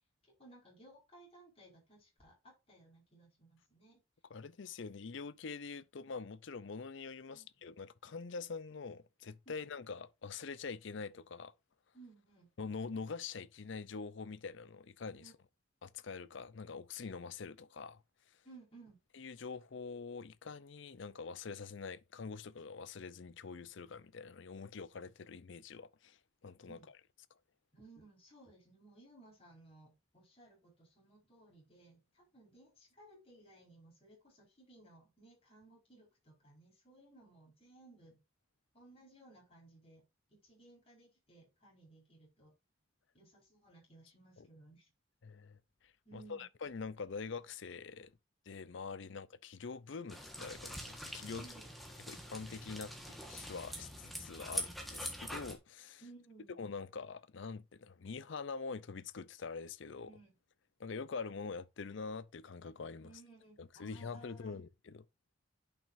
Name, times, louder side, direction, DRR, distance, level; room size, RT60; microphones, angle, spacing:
voice 1, 0.4-4.0 7.3-7.5 9.4-9.6 11.9-12.5 15.2-15.3 18.4-19.0 26.7-26.9 27.7-38.2 38.7-40.0 40.4-42.5 43.1-44.9 46.0-46.5 51.3-51.7 56.0-56.6 60.0-60.3 63.0-64.6, right 2 dB, 30° left, 4.8 m, -59 dB
voice 2, 4.3-11.5 12.6-15.3 15.8-18.0 19.2-26.2 26.4-26.8 44.4-44.5 45.2-45.6 45.8-48.1 48.5-51.4 52.1-56.0 56.6-60.1 60.8-63.1 63.6-65.0, left 5 dB, 60° left, 0.5 m, -45 dB
sound 1, 50.1-55.6, equal, ahead, 1.3 m, -44 dB
10.5 x 5.8 x 2.6 m
head